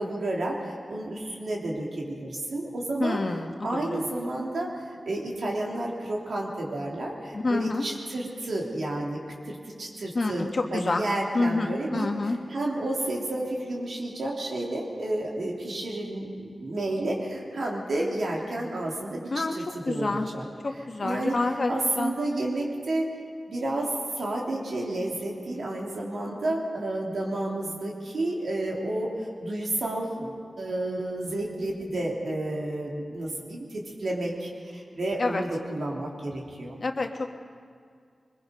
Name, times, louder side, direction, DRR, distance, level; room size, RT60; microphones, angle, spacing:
voice 1, 0.0-3.2 3.6-10.4 10.7-20.5 20.7-21.4 21.7-23.1 23.5-36.8, right 1 dB, 80° right, -2 dB, 3.4 m, -31 dB
voice 2, 3.0-4.1 7.3-7.8 10.1-11.0 11.3-12.4 19.3-19.5 19.8-20.3 20.6-22.1 35.2-35.4 36.8-37.4, left 3 dB, 55° left, 3 dB, 1.6 m, -28 dB
23.0 x 21.0 x 5.4 m, 2.2 s
cardioid pair, 60°, 0 cm